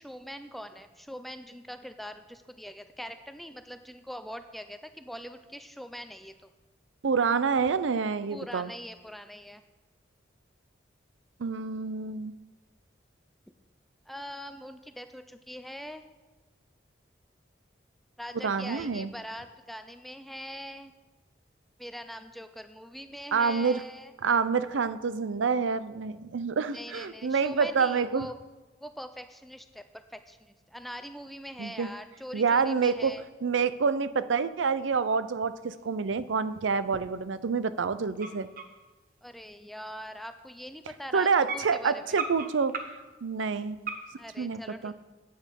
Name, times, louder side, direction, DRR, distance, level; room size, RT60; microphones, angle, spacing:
voice 1, 0.0-6.5 8.3-9.6 14.1-16.0 18.2-20.9 21.8-24.1 26.7-28.4 28.8-33.2 39.2-42.2 44.2-44.9, equal, ahead, 9 dB, 0.4 m, -42 dB
voice 2, 7.0-8.7 11.4-12.3 18.4-19.1 23.3-23.8 24.2-28.3 31.6-31.9 32.3-33.1 33.4-38.5 41.1-42.7 43.2-43.9 44.4-44.9, right 5 dB, 90° right, 14 dB, 0.5 m, -27 dB
sound 1, 35.7-35.8 36.3-36.4 36.9-37.2 37.5-37.6 38.1-39.1 39.7-39.8 40.4-40.5 40.7-40.9 41.4-43.1 43.8-44.2, right 4 dB, 45° right, 0.9 m, -38 dB
9.2 x 8.9 x 5.3 m, 1.2 s
head